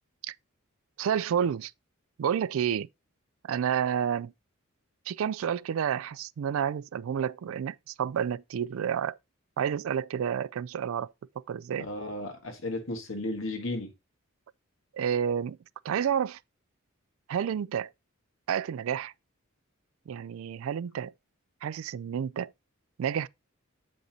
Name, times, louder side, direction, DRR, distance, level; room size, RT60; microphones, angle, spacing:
voice 1, 1.0-1.7 2.2-2.9 3.4-4.3 5.1-9.2 9.6-11.9 14.9-15.6 15.8-16.4 17.3-17.9 18.5-19.1 20.1-21.1 21.6-22.5 23.0-23.3, right 8 dB, 65° right, 0.3 m, -30 dB
voice 2, 11.8-13.9, left 2 dB, 60° left, 1.8 m, -34 dB
8.0 x 5.2 x 2.9 m
head